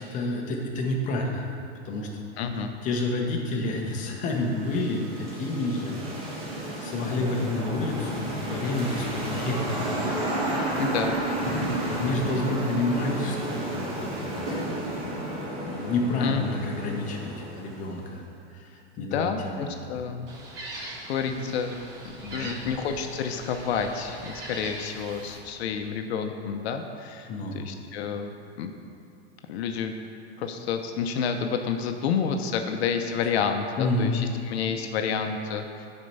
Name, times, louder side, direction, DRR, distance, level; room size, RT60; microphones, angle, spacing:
voice 1, 0.0-1.5 1.8-2.2 2.8-6.5 6.8-10.0 11.6-15.2 15.6-18.2 18.5-19.7 20.7-21.5 22.2-22.5 27.3-27.6 33.8-34.1, left 2 dB, 25° left, 0 dB, 0.9 m, -30 dB
voice 2, 2.4-2.7 10.8-11.2 16.2-16.6 19.0-20.3 21.1-21.7 22.0-28.7 29.5-29.9 30.4-35.9, left 6 dB, 75° left, 5 dB, 0.7 m, -29 dB
sound 1, 3.6-18.1, right 1 dB, 45° right, 2.2 m, -32 dB
Gull seagull, 20.3-25.4, right 2 dB, 60° right, 2.0 m, -41 dB
10.0 x 4.5 x 5.4 m, 2.5 s
supercardioid pair, 160°, 32 cm